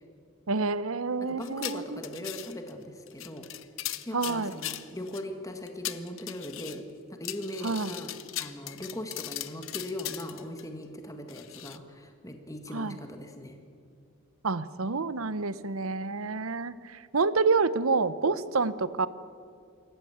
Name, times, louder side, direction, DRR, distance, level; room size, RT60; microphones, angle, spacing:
voice 1, 0.5-2.0 4.1-4.5 7.6-7.9 12.7-13.0 14.4-19.1, right 4 dB, 75° right, 16 dB, 0.8 m, -28 dB
voice 2, 1.3-3.5 4.0-6.8 7.2-13.6, left 1 dB, 15° left, 5 dB, 1.7 m, -39 dB
sound 1, 1.4-2.7 3.1-5.2 5.7-6.8 7.2-10.6 11.3-11.8, left 14 dB, 65° left, 0.8 m, -39 dB
26.5 x 14.5 x 8.8 m, 2.3 s
head